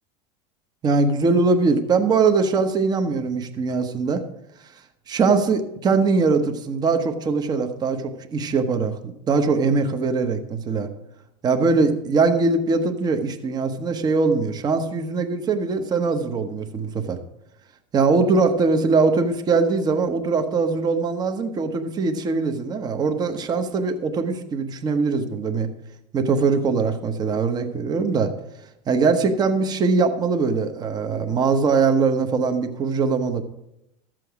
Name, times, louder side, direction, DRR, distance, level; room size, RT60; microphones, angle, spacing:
voice 1, 0.8-4.2 5.1-10.9 11.4-17.2 17.9-25.7 26.1-28.3 28.9-33.4, right 4 dB, 25° right, 7 dB, 1.0 m, -21 dB
13.0 x 7.6 x 4.9 m, 0.83 s
supercardioid pair, 140°, 16 cm